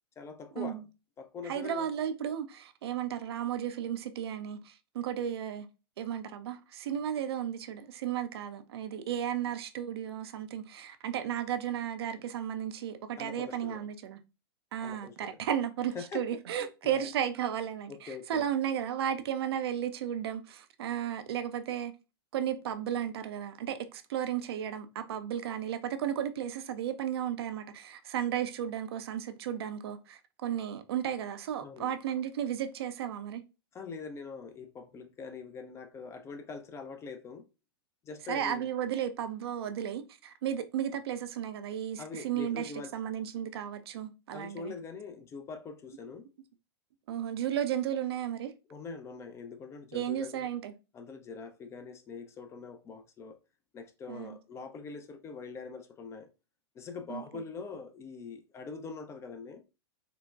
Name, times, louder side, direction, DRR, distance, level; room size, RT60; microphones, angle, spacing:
voice 1, 0.2-0.8 1.2-1.9 13.2-13.9 14.8-15.4 15.9-16.3 16.5-17.1 17.9-18.5 31.6-31.9 33.7-37.5 38.0-38.7 42.0-43.0 44.3-46.3 48.7-50.5 50.9-53.4 53.7-56.3 56.7-59.6, left 4 dB, 20° left, 0.4 m, -43 dB
voice 2, 1.4-5.7 6.0-14.2 14.7-21.9 22.3-33.4 38.3-44.7 47.1-48.5 49.9-50.7 54.1-54.4 57.1-57.4, right 9 dB, 65° right, 0.4 m, -34 dB
3.9 x 2.1 x 2.2 m
hypercardioid pair, 105°, 14 cm